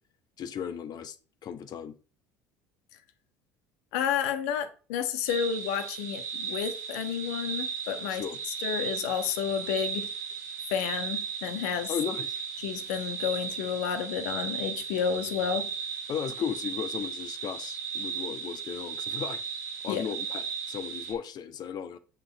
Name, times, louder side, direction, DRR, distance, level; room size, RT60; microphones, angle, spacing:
voice 1, 0.4-1.2 1.4-2.0 8.1-8.4 11.9-12.4 16.1-19.4 19.8-22.0, left 8 dB, 50° left, 1.3 m, -35 dB
voice 2, 3.9-8.2 8.6-10.1 10.7-11.9 12.6-15.7 19.9-20.0, left 8 dB, 75° left, 1.3 m, -31 dB
sound 1, 5.3-21.1, right 6 dB, 80° right, 3.5 m, -36 dB
8.8 x 6.0 x 4.1 m
hypercardioid pair, 70°, 9 cm